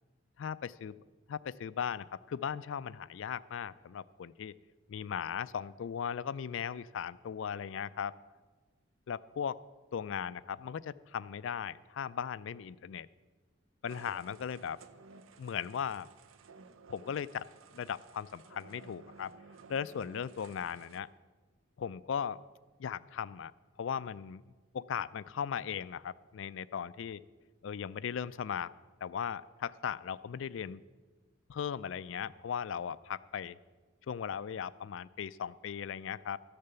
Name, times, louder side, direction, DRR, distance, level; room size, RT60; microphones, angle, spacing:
voice 1, 0.4-1.0 1.3-4.5 4.9-8.2 9.1-9.6 9.9-13.1 13.8-14.8 15.4-16.1 16.9-17.5 17.7-19.3 19.7-21.1 21.8-22.4 22.8-23.5 23.8-24.4 24.7-27.2 27.6-28.7 29.0-30.8 31.5-33.6 34.1-36.4, left 7 dB, 65° left, 18 dB, 0.3 m, -37 dB
sound 1, 13.9-21.0, right 4 dB, 80° right, 0.6 m, -56 dB
13.5 x 6.8 x 6.8 m, 1.3 s
head